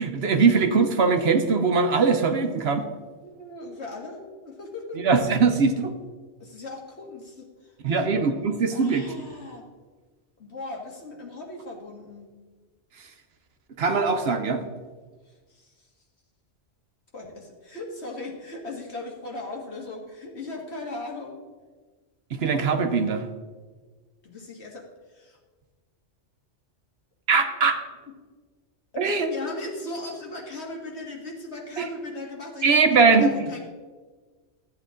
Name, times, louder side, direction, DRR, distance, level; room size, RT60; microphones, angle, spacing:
voice 1, 0.0-2.8 5.0-5.9 7.8-9.0 13.8-14.6 22.3-23.3 27.3-27.8 29.0-29.3 31.8-31.9 32.6-33.3, right 4 dB, 60° right, 7 dB, 1.0 m, -21 dB
voice 2, 3.2-5.0 6.4-7.5 7.9-8.1 8.7-9.7 10.4-12.3 15.5-15.7 17.1-21.3 24.2-24.8 25.1-25.4 27.3-27.4 28.9-33.6, left 2 dB, 65° left, 0 dB, 2.0 m, -38 dB
13.0 x 8.4 x 3.7 m, 1.4 s
omnidirectional pair, 1.2 m